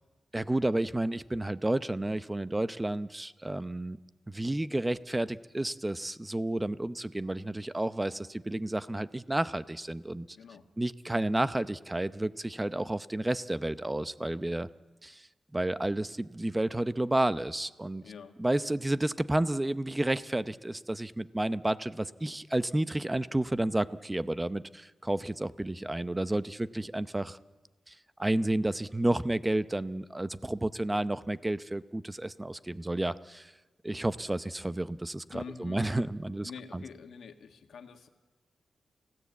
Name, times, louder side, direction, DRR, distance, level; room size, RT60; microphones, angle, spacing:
voice 1, 0.3-4.0 4.3-10.4 10.8-14.7 15.0-15.3 15.5-18.0 18.4-27.4 27.9-33.5 33.8-36.8, right 1 dB, 15° right, 14 dB, 0.7 m, -31 dB
voice 2, 10.3-10.6 18.0-18.4 35.3-36.0 36.4-38.1, left 6 dB, 85° left, 6 dB, 1.6 m, -46 dB
29.5 x 16.5 x 8.4 m, 1.3 s
wide cardioid pair, 100°, 0 cm